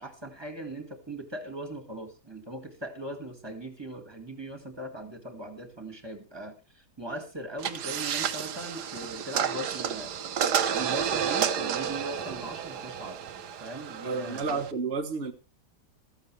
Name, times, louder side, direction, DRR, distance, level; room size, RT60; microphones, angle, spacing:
voice 1, 0.0-10.1 10.7-13.2 13.6-14.6, right 1 dB, 15° right, 2.1 m, -39 dB
sound 1, 7.6-14.7, right 8 dB, 75° right, 1.5 m, -31 dB
voice 2, 14.0-15.3, right 4 dB, 40° right, 1.4 m, -31 dB
14.5 x 14.0 x 3.2 m
omnidirectional pair, 1.8 m